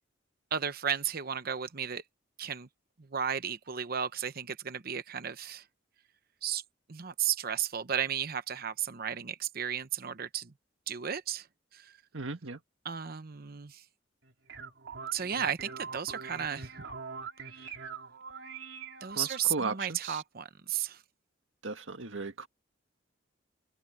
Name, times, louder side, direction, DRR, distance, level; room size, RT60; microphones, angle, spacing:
voice 1, 0.5-2.0 2.4-2.7 3.1-5.6 6.4-6.6 6.9-10.5 10.9-11.5 11.7-12.0 12.8-13.8 15.1-16.7 19.0-21.0, right 8 dB, 50° right, 0.8 m, -34 dB
voice 2, 12.1-12.6 19.2-20.2 21.6-22.5, right 3 dB, 85° right, 1.8 m, -36 dB
sound 1, 14.2-19.5, right 5 dB, 70° right, 3.1 m, -43 dB
open air
head